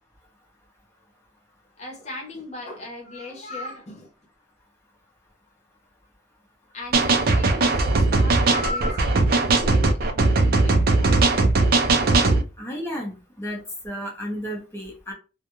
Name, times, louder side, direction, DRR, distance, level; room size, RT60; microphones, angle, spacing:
voice 1, 1.8-4.1 6.7-11.3, left 2 dB, 35° left, 0.8 m, -37 dB
sound 1, 6.9-12.4, right 3 dB, 50° right, 0.4 m, -19 dB
voice 2, 12.6-15.1, equal, 15° left, 0.7 m, -33 dB
2.3 x 2.2 x 3.0 m
head